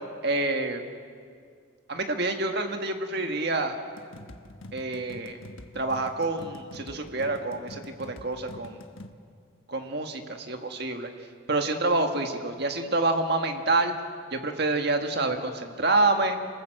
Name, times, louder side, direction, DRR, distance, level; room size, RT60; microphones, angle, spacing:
voice 1, 0.2-0.8 1.9-3.8 4.7-5.4 5.8-8.8 9.7-11.1 11.5-13.9 14.3-16.4, right 2 dB, 50° right, 5 dB, 1.8 m, -27 dB
sound 1, 4.0-9.1, left 1 dB, 75° left, 1.3 m, -45 dB
27.0 x 20.0 x 7.9 m, 2.1 s
head